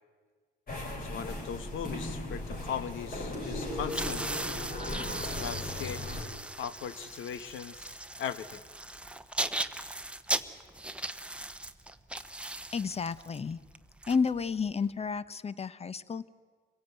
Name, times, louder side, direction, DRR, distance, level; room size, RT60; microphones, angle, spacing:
sound 1, 0.7-6.2, left 1 dB, 45° left, 5.3 m, -37 dB
voice 1, 1.0-4.3 5.2-6.0 6.6-8.6, left 8 dB, 80° left, 14 dB, 1.2 m, -39 dB
sound 2, 3.8-14.8, right 2 dB, 5° right, 1.0 m, -38 dB
voice 2, 12.7-13.6 14.1-16.3, left 5 dB, 30° left, 17 dB, 0.9 m, -31 dB
25.0 x 16.5 x 9.2 m, 1.5 s
cardioid pair, 90°, 20 cm